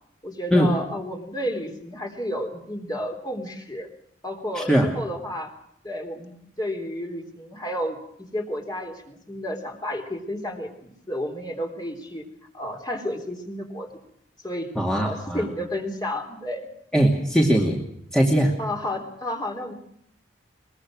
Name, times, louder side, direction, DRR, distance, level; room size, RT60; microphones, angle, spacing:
voice 1, 0.2-3.9 4.2-5.5 5.8-8.0 8.3-12.2 12.5-13.9 14.4-14.7 15.0-16.7 18.6-19.7, left 1 dB, 20° left, 3 dB, 3.6 m, -31 dB
voice 2, 4.5-4.9 14.8-15.4 16.9-17.8 18.1-18.5, equal, 5° left, -1 dB, 2.4 m, -20 dB
22.5 x 21.5 x 6.3 m, 0.72 s
head